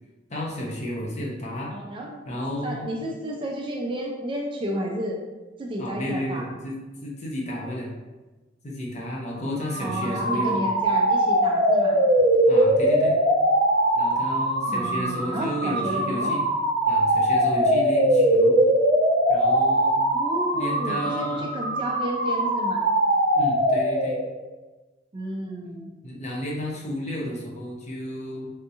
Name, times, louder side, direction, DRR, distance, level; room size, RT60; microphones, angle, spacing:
voice 1, 0.3-1.7 2.2-2.9 5.8-7.9 8.6-10.6 12.5-13.2 13.9-16.5 16.9-18.6 19.3-19.9 20.5-21.5 23.3-24.2 26.0-28.5, equal, 35° left, -3 dB, 0.7 m, -32 dB
voice 2, 1.7-2.2 2.6-5.2 5.6-6.5 9.8-12.1 14.7-16.4 20.1-22.8 25.1-25.9, right 1 dB, 25° right, 0 dB, 0.3 m, -32 dB
sound 1, 9.7-24.3, right 1 dB, 60° right, 0.7 m, -22 dB
3.4 x 2.7 x 2.6 m, 1.2 s
head